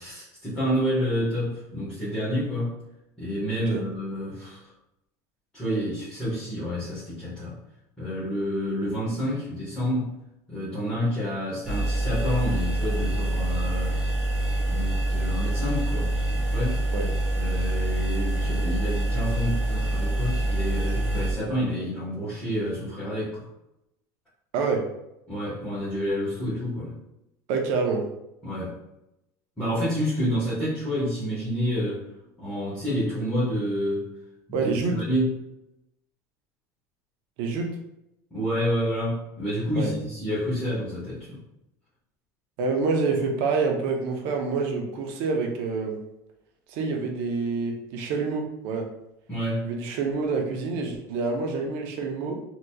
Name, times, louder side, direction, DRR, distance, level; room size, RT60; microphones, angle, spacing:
voice 1, 0.0-2.8 3.2-4.6 5.5-7.6 8.0-10.1 10.5-14.0 14.6-16.8 17.3-23.5 25.3-27.0 28.4-28.8 29.6-32.1 32.4-34.1 34.5-35.3 38.3-41.4 49.3-49.7, equal, 10° left, -11 dB, 1.4 m, -29 dB
sound 1, 11.6-21.3, right 1 dB, 10° right, 1.0 m, -26 dB
voice 2, 24.5-24.9 27.5-28.1 34.5-35.0 37.4-37.8 39.8-39.9 42.6-46.0 46.7-48.9 49.6-52.4, right 4 dB, 65° right, 3 dB, 0.7 m, -27 dB
3.8 x 2.9 x 2.3 m, 0.87 s
supercardioid pair, 135°, 9 cm